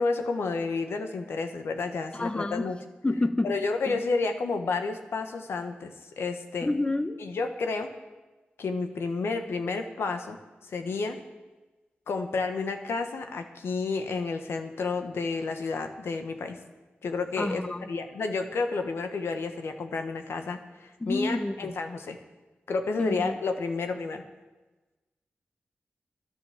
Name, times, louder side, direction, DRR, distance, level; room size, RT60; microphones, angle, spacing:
voice 1, 0.0-2.8 3.4-6.7 7.2-7.9 8.6-10.4 10.6-11.2 12.1-16.6 17.0-22.2 22.7-24.2, left 4 dB, 85° left, 6 dB, 1.2 m, -31 dB
voice 2, 2.1-2.7 3.0-3.6 3.9-4.0 6.6-7.2 17.4-17.8 21.0-21.8 23.0-23.4, left 2 dB, 25° left, 10 dB, 1.0 m, -29 dB
11.5 x 10.5 x 7.3 m, 1.2 s
cardioid pair, 50°, 4 cm